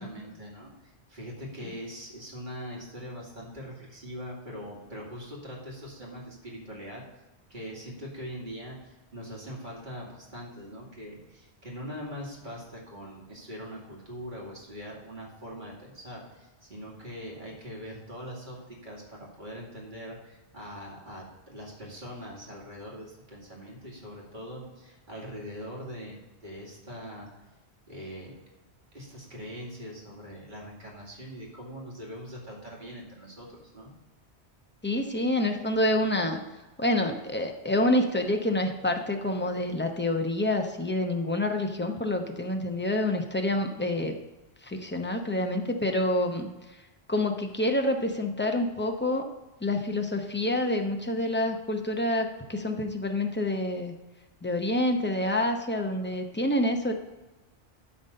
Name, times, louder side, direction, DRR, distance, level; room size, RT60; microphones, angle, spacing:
voice 1, 0.0-7.0 7.5-27.3 27.9-28.4 28.9-33.9, equal, 45° right, -3 dB, 2.4 m, -42 dB
voice 2, 34.8-36.4 36.8-44.2 44.6-46.5 47.1-49.3 49.6-53.9 54.4-56.9, left 1 dB, 10° left, 4 dB, 0.7 m, -27 dB
12.5 x 4.1 x 5.3 m, 1.1 s
omnidirectional pair, 1.1 m